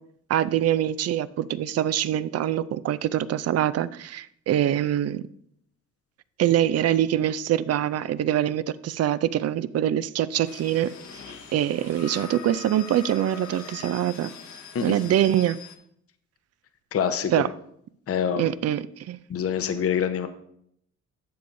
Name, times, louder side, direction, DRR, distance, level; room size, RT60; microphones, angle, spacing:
voice 1, 0.3-5.2 6.4-10.9 11.5-14.3 14.8-15.6 17.3-17.5 18.4-19.2, right 11 dB, 55° right, 0.4 m, -24 dB
sound 1, 10.5-15.8, left 6 dB, 70° left, 1.4 m, -42 dB
voice 2, 16.9-17.4 18.1-18.5 19.3-20.3, left 8 dB, 50° left, 0.8 m, -25 dB
12.5 x 7.0 x 2.6 m
cardioid pair, 90°, 30 cm